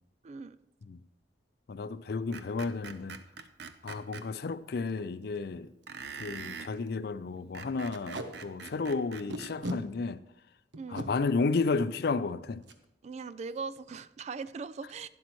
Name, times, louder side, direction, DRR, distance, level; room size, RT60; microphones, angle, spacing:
voice 1, 0.2-0.6 10.8-11.1 13.0-15.1, right 4 dB, 35° right, 0.3 m, -40 dB
voice 2, 1.7-3.2 3.8-5.7 6.2-10.2 10.9-12.6, left 4 dB, 60° left, 0.4 m, -32 dB
Screech, 2.3-4.3 5.9-6.7 7.4-9.6, right 5 dB, 65° right, 0.6 m, -44 dB
Packing tape duct tape, 4.3-4.4 4.9-5.0 5.2-5.4 5.8-5.9 6.2-6.4 6.7-6.9 7.9-8.3 9.3-9.8 10.7-11.1 12.6-12.8 13.2-13.3 13.6-14.0, equal, 85° right, 0.9 m, -37 dB
11.5 x 10.5 x 3.1 m
head